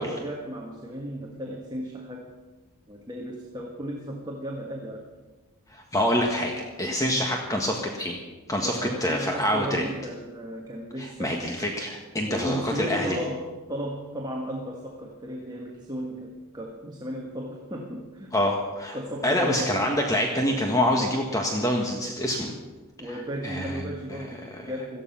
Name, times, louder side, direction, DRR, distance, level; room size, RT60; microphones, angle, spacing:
voice 1, 0.0-2.3 2.9-5.1 6.2-6.7 8.6-11.4 12.3-18.4 18.9-19.8 23.0-25.0, equal, 20° right, 0 dB, 1.6 m, -35 dB
voice 2, 5.7-6.5 6.8-8.2 8.5-9.9 11.0-13.2 18.3-19.0 19.2-22.5 23.1-23.8 24.1-24.2 24.5-24.7, left 1 dB, 15° left, 1 dB, 1.5 m, -26 dB
17.5 x 14.0 x 5.8 m, 1.2 s
head